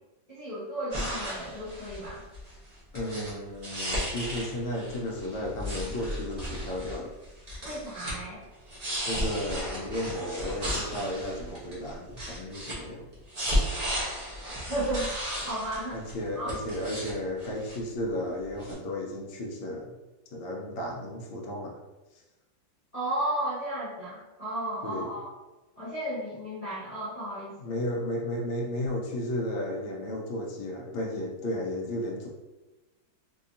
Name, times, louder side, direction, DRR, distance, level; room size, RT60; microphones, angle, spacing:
voice 1, 0.3-2.2 7.6-8.5 14.7-16.0 16.3-16.6 22.9-25.3 25.8-27.8, right 1 dB, 25° left, -11 dB, 0.9 m, -34 dB
sound 1, 0.9-2.5 2.9-3.3 3.6-7.0 7.2-8.1 8.4-12.7 13.1-16.1 16.5-17.1 17.4-18.0 18.6-18.7, equal, 30° right, 0.8 m, -34 dB
voice 2, 2.9-7.1 9.0-13.0 15.9-19.9 20.3-21.8 24.8-25.1 27.6-32.3, left 1 dB, 90° left, -1 dB, 1.4 m, -33 dB
4.1 x 2.8 x 2.6 m, 1.1 s
omnidirectional pair, 2.0 m